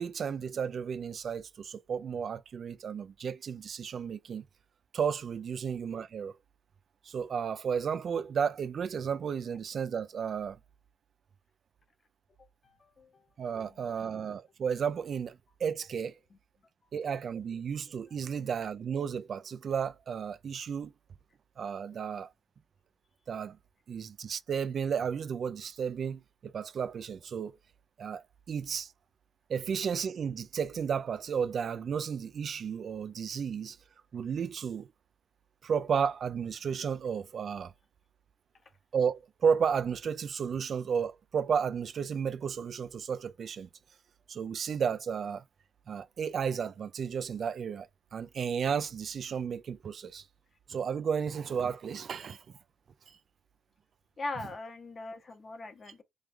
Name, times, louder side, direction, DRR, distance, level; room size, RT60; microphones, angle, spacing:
voice 1, 0.0-4.4 4.9-6.4 7.0-10.6 13.4-16.1 16.9-20.9 21.6-22.3 23.3-23.6 23.9-27.6 28.0-28.9 29.5-33.8 34.1-34.9 35.6-37.7 38.9-43.7 44.3-45.4 45.9-50.2 50.7-52.4 53.1-53.2, right 7 dB, 55° right, 0.3 m, -33 dB
voice 2, 12.6-13.3 13.6-14.1 16.3-16.4 16.8-17.1 18.1-18.3 54.2-56.0, left 2 dB, 40° left, 0.9 m, -42 dB
3.1 x 2.3 x 3.4 m
cardioid pair, 90°, 0 cm